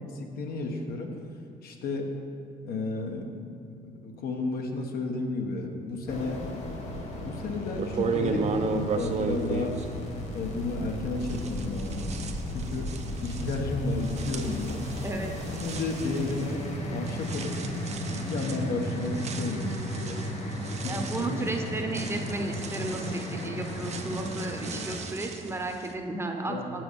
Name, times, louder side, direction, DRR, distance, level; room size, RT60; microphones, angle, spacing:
voice 1, 0.1-1.1 1.6-2.1 2.6-3.4 4.0-6.5 7.1-9.8 10.3-12.2 12.5-12.9 13.2-14.8 15.6-16.6 16.9-17.5 18.1-20.2 20.8-21.5 26.5-26.8, left 3 dB, 65° left, 2 dB, 1.2 m, -32 dB
sound 1, 6.1-25.0, equal, 40° left, 1.5 m, -35 dB
sound 2, 7.2-7.3 7.7-10.9 11.2-25.9, right 5 dB, 40° right, 0.7 m, -36 dB
voice 2, 20.5-26.8, right 2 dB, 15° right, 3 dB, 0.9 m, -34 dB
7.2 x 6.1 x 6.8 m, 2.3 s
cardioid pair, 110°, 17 cm